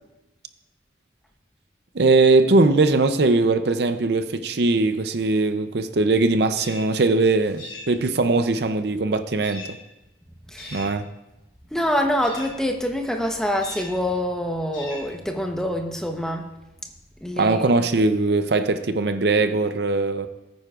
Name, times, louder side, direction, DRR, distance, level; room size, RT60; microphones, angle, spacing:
voice 1, 1.9-9.6 10.7-11.1 17.4-20.3, right 3 dB, 60° right, 0.6 m, -20 dB
sound 1, 6.5-6.9 7.6-7.9 9.4-9.8 10.6-10.9 12.2-12.6 13.6-14.0 14.7-15.1, left 2 dB, 75° left, 3.0 m, -39 dB
voice 2, 10.5-10.9 11.7-16.5 17.2-17.7, equal, 5° left, 0.9 m, -26 dB
19.0 x 9.2 x 2.4 m
head